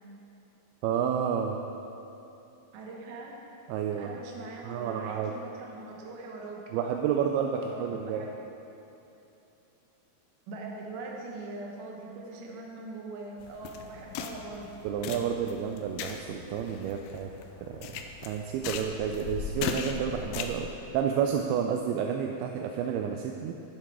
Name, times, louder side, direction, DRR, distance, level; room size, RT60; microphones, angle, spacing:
voice 1, 0.8-1.6 3.7-4.2 4.6-5.3 6.7-8.2 14.8-17.3 17.6-23.5, right 8 dB, 85° right, 3 dB, 2.2 m, -30 dB
voice 2, 2.7-3.3 4.0-6.6 7.6-8.3 10.5-14.7, right 3 dB, 65° right, -1 dB, 2.3 m, -42 dB
sound 1, 13.4-20.7, left 6 dB, 85° left, 2.1 m, -38 dB
11.5 x 7.5 x 4.7 m, 2.9 s
omnidirectional pair, 4.8 m